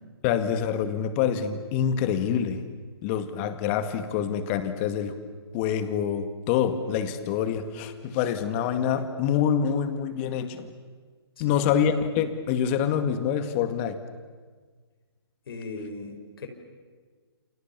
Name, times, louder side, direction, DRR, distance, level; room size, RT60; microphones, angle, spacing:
voice 1, 0.2-2.6 3.0-5.2 5.5-10.7 11.4-14.0, left 8 dB, 30° left, 9 dB, 2.2 m, -26 dB
voice 2, 11.4-11.8 15.5-16.5, left 3 dB, 60° left, 6 dB, 5.4 m, -38 dB
29.5 x 28.0 x 7.0 m, 1.5 s
hypercardioid pair, 140°, 14 cm